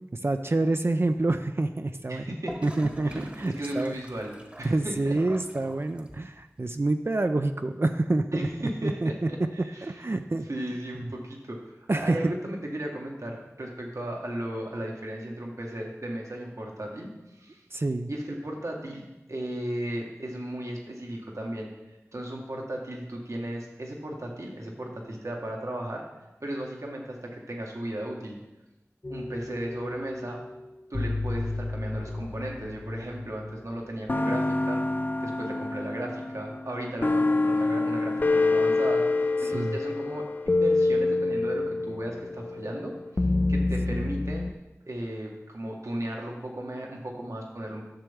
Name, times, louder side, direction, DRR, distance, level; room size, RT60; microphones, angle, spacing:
voice 1, 0.0-2.3 2.6-4.0 4.6-9.1 9.8-10.5 11.0-11.1 11.9-12.2 17.7-18.1 39.5-39.8 43.9-44.0, right 2 dB, 50° right, 7 dB, 0.4 m, -27 dB
voice 2, 2.1-2.6 3.0-3.3 3.6-5.1 8.3-9.9 10.4-17.1 17.4-17.6 18.1-21.7 22.1-26.0 26.4-28.4 29.1-30.4 30.9-34.9 35.2-42.9 43.5-44.5 44.9-47.8, right 1 dB, 80° right, 0 dB, 1.4 m, -35 dB
Gurgling / Toilet flush, 2.5-6.4, right 1 dB, 25° right, 1.0 m, -43 dB
sound 1, 29.0-30.2 30.9-33.5 34.1-44.5, left 2 dB, 35° left, 0.4 m, -27 dB
10.5 x 6.8 x 3.5 m, 1.0 s
wide cardioid pair, 45°, 5 cm